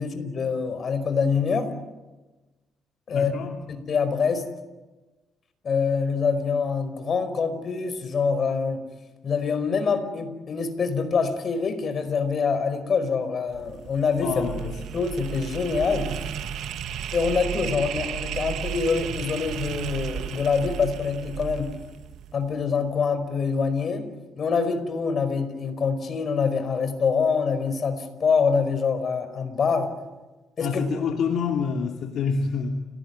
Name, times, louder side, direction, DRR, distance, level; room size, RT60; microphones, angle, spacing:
voice 1, 0.0-1.8 3.1-3.3 3.7-4.4 5.6-8.8 9.2-14.4 14.9-16.1 17.1-21.8 22.3-24.1 24.4-29.9 30.6-30.8, left 5 dB, 50° left, 10 dB, 4.9 m, -25 dB
voice 2, 3.1-3.5 14.2-14.8 30.6-32.9, left 5 dB, 75° left, 2 dB, 2.8 m, -27 dB
sound 1, 13.5-22.6, right 9 dB, 80° right, 1.6 m, -34 dB
29.5 x 19.0 x 9.6 m, 1.2 s
cardioid pair, 90°, 0 cm